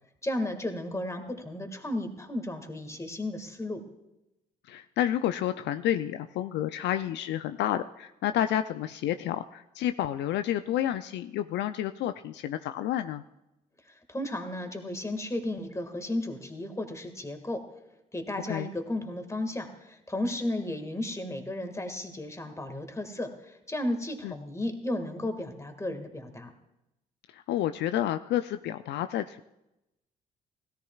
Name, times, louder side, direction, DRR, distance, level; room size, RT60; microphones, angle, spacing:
voice 1, 0.2-3.8 13.9-17.6 18.1-26.5, left 1 dB, 15° left, 6 dB, 1.8 m, -34 dB
voice 2, 4.6-13.2 18.5-18.7 24.2-24.3 27.3-29.4, left 11 dB, 65° left, 10 dB, 0.4 m, -30 dB
16.5 x 14.0 x 2.4 m, 0.91 s
hypercardioid pair, 50°, 20 cm